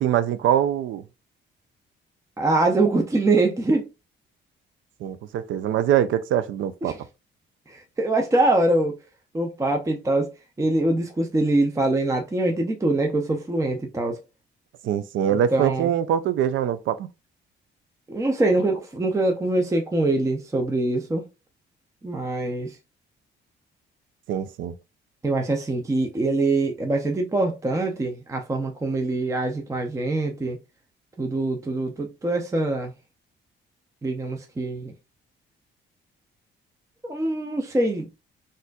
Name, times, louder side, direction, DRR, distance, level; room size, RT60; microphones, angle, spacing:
voice 1, 0.0-1.0 5.0-7.0 14.8-17.1 24.3-24.7, right 10 dB, 75° right, 0.5 m, -23 dB
voice 2, 2.4-3.9 6.9-7.0 7.7-9.0 9.3-10.3 10.6-14.2 15.5-15.9 18.1-21.2 22.0-22.8 25.2-30.6 31.2-32.9 34.0-34.9 37.0-38.1, right 2 dB, 15° right, 0.5 m, -23 dB
4.1 x 2.5 x 2.3 m
cardioid pair, 90°, 20 cm